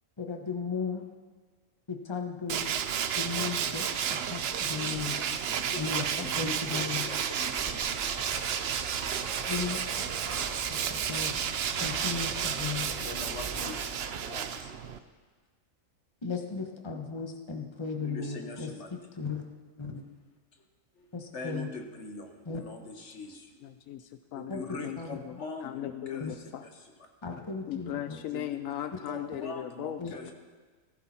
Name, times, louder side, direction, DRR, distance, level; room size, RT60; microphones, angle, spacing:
voice 1, 0.2-1.0 1.9-2.7 3.1-5.2 5.8-7.0 9.5-9.8 10.7-11.4 11.8-12.9 16.2-18.7 19.2-19.4 19.8-20.0 21.1-21.7 22.5-22.6 24.5-24.6 25.0-25.2 26.2-26.3 27.2-28.2 30.0-30.1, left 5 dB, 20° left, 2 dB, 1.3 m, -36 dB
Tools, 2.5-15.0, right 8 dB, 55° right, 0.8 m, -32 dB
voice 2, 4.8-8.1 12.9-14.9 18.0-18.9 20.5-20.7 20.9-21.1 21.3-23.7 24.3-27.1 28.3-28.5 29.1-30.3, left 2 dB, 60° left, 4 dB, 1.7 m, -43 dB
sound 1, 7.6-14.2, right 2 dB, 25° right, 1.6 m, -43 dB
voice 3, 23.6-25.4 25.6-26.6 27.7-30.1, left 11 dB, 80° left, 10 dB, 1.0 m, -38 dB
16.0 x 14.5 x 4.4 m, 1.4 s
omnidirectional pair, 1.4 m